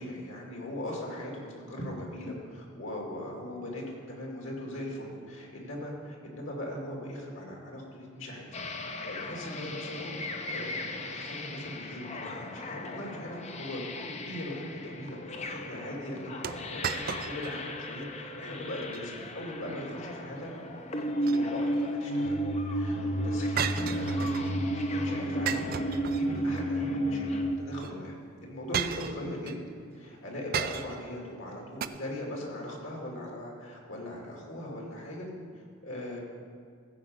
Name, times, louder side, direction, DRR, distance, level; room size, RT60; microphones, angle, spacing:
voice 1, 0.0-8.5 8.7-10.1 10.4-13.8 14.1-20.5 21.0-25.7 26.0-27.3 27.6-28.2 28.4-29.5 29.9-35.3 35.5-36.2, left 1 dB, 65° left, -1 dB, 2.4 m, -40 dB
sound 1, 8.5-27.6, equal, 30° left, 0.7 m, -33 dB
sound 2, 16.4-17.6 18.0-18.1 18.7-19.1 21.0-21.8 23.6-24.6 25.5-26.6 27.8-27.9 28.7-29.6 30.5-31.1 31.8-31.9, right 8 dB, 45° right, 0.3 m, -34 dB
15.5 x 5.2 x 7.8 m, 2.1 s
head